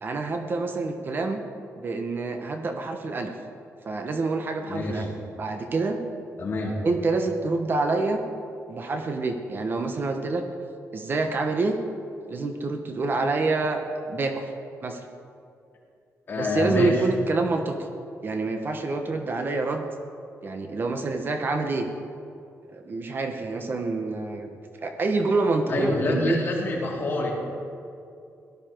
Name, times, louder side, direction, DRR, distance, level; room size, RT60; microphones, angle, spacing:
voice 1, 0.0-1.4 1.8-3.4 3.8-5.1 5.4-6.0 6.8-8.2 8.7-10.4 10.9-11.8 12.3-13.8 14.1-14.5 14.8-15.0 16.4-17.8 18.2-19.8 20.4-21.9 22.7-24.5 24.8-26.4, right 3 dB, 40° right, 5 dB, 1.0 m, -27 dB
voice 2, 4.7-5.1 6.4-6.8 16.3-17.0 25.7-27.3, left 2 dB, 40° left, -4 dB, 3.5 m, -26 dB
18.0 x 12.5 x 4.5 m, 2.5 s
wide cardioid pair, 145°, 6 cm